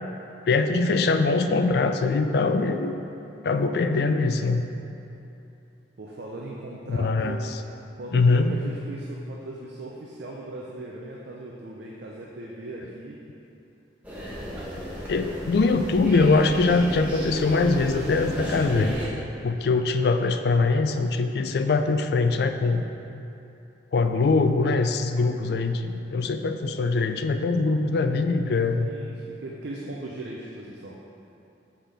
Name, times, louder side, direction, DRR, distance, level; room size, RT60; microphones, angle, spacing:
voice 1, 0.5-2.9 3.4-4.6 6.9-7.6 8.1-8.6 15.1-19.0 19.4-22.9 23.9-28.9, left 3 dB, 55° left, 7 dB, 0.3 m, -22 dB
voice 2, 6.0-7.4 8.0-13.2 28.8-31.0, right 2 dB, 65° right, -3 dB, 0.5 m, -38 dB
sound 1, 14.0-19.0, equal, 10° right, 1.1 m, -33 dB
6.4 x 5.7 x 3.4 m, 2.9 s
head